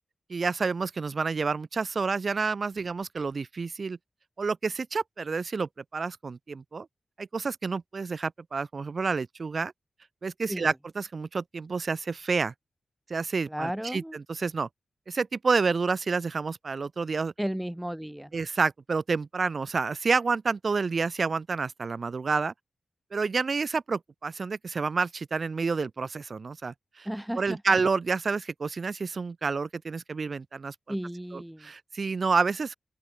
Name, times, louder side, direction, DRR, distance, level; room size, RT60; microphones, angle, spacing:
voice 1, 0.3-4.0 4.4-6.9 7.2-9.7 10.2-12.5 13.1-14.7 15.1-17.3 18.3-22.5 23.1-27.1 27.3-30.7 31.3-32.7, right 4 dB, 55° right, 1.0 m, -29 dB
voice 2, 13.5-14.2 17.4-18.3 27.1-27.8 30.9-31.7, equal, 5° right, 0.6 m, -34 dB
open air
wide cardioid pair, 85°, 0 cm